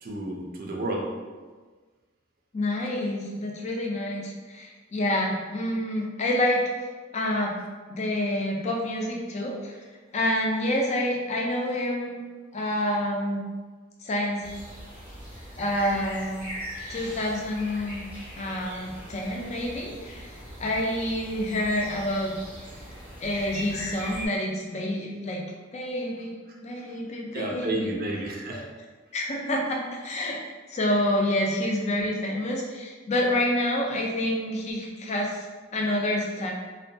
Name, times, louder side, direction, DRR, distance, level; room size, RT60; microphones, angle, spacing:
voice 1, 0.0-1.1 27.3-28.6 31.5-31.6, right 1 dB, 50° right, -1 dB, 0.5 m, -31 dB
voice 2, 2.5-6.6 7.1-7.6 7.9-9.8 10.1-12.2 12.5-13.4 14.0-14.4 15.6-16.5 16.9-18.0 18.4-22.3 23.2-25.4 25.7-26.4 26.6-27.9 28.5-28.6 29.1-30.4 30.7-35.4 35.7-36.5, left 1 dB, 35° left, -1 dB, 0.4 m, -28 dB
sound 1, 14.4-24.3, equal, 10° right, 0.7 m, -40 dB
2.7 x 2.1 x 2.6 m, 1.4 s
head